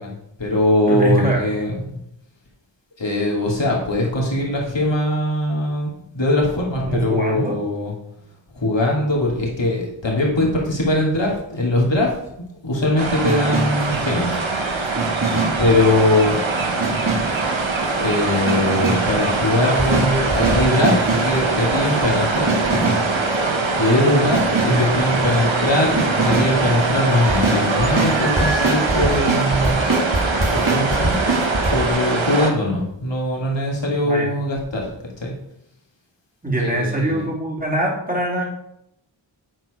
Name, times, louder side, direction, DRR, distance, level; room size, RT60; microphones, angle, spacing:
voice 1, 0.0-1.8 3.0-5.9 6.1-7.9 8.5-12.1 12.6-14.4 15.6-16.4 17.9-20.9 21.2-23.0 23.8-24.4 24.6-29.8 30.5-31.2 31.7-34.9 35.2-35.3 36.6-37.2, left 1 dB, 70° left, -3 dB, 2.8 m, -21 dB
voice 2, 0.9-1.4 6.9-7.6 24.6-25.4 34.0-34.3 36.4-38.4, right 1 dB, 20° right, -3 dB, 2.8 m, -23 dB
sound 1, 13.0-32.5, right 3 dB, 80° right, 1.2 m, -22 dB
sound 2, 13.2-13.9 15.0-15.7 16.8-17.4 18.5-19.2 19.8-21.4 22.5-23.2 24.3-24.9 26.0-26.6 27.3-31.7, right 3 dB, 45° right, 2.0 m, -23 dB
9.1 x 4.6 x 5.0 m, 0.78 s
wide cardioid pair, 45°, 46 cm